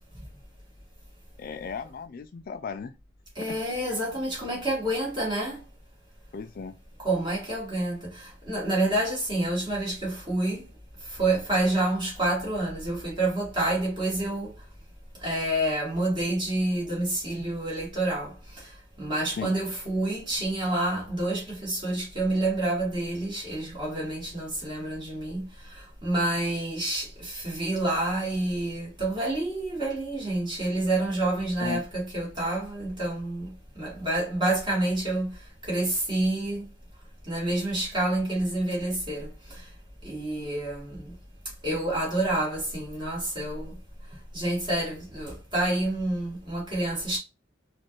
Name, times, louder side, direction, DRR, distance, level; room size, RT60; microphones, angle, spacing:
voice 1, 1.4-2.9 3.5-3.6 6.3-6.7 19.4-19.5 31.6-31.8, left 5 dB, 50° left, 0.3 m, -35 dB
voice 2, 3.4-5.6 7.0-8.0 8.5-10.6 11.2-14.5 15.2-18.3 19.0-25.4 26.0-33.4 33.8-35.3 35.7-36.6 37.3-39.3 40.0-41.0 41.6-43.7 44.3-47.2, right 1 dB, 25° right, 2.0 m, -28 dB
4.2 x 2.5 x 3.0 m
head